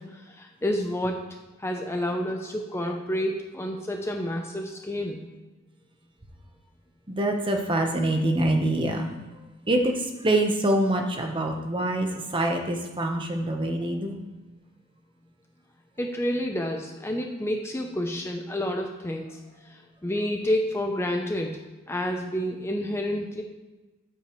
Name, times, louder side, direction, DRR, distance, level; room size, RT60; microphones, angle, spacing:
voice 1, 0.1-1.3 1.6-5.2 16.0-21.6 21.9-23.4, left 1 dB, 10° left, 3 dB, 0.6 m, -29 dB
voice 2, 7.1-9.1 9.7-12.1 12.3-14.2, right 1 dB, 25° right, 3 dB, 1.0 m, -25 dB
13.0 x 8.2 x 3.1 m, 1.2 s
head